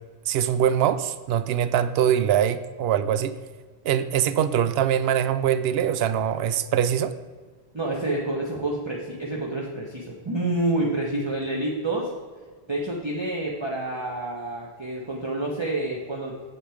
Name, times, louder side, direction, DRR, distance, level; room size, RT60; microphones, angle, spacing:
voice 1, 0.3-3.3 3.8-7.1, right 9 dB, 75° right, 13 dB, 0.8 m, -23 dB
voice 2, 7.7-12.1 12.7-16.3, right 2 dB, 25° right, -3 dB, 1.2 m, -28 dB
8.7 x 7.6 x 5.0 m, 1.5 s
omnidirectional pair, 1.1 m